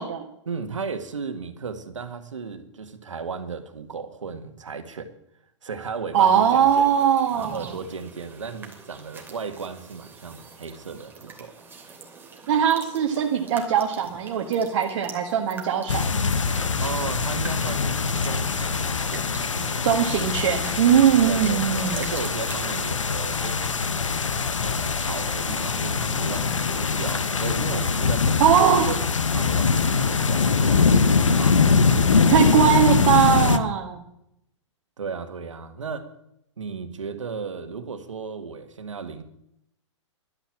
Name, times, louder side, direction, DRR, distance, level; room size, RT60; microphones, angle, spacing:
voice 1, 0.5-5.1 5.6-7.1 7.3-11.5 16.8-19.9 21.2-24.0 24.7-28.6 28.9-29.0 29.3-31.7 35.0-36.1 36.6-39.2, right 5 dB, 75° right, 8 dB, 1.8 m, -35 dB
sound 1, 6.1-22.8, right 4 dB, 15° right, 2.9 m, -44 dB
voice 2, 6.1-7.7 12.5-16.1 19.8-22.1 28.4-28.9 32.3-34.0, right 9 dB, 55° right, 2 dB, 1.6 m, -20 dB
sound 2, 15.9-33.6, left 5 dB, 80° left, 1.1 m, -23 dB
12.0 x 10.0 x 7.5 m, 0.78 s
figure-of-eight pair, 110°, 16 cm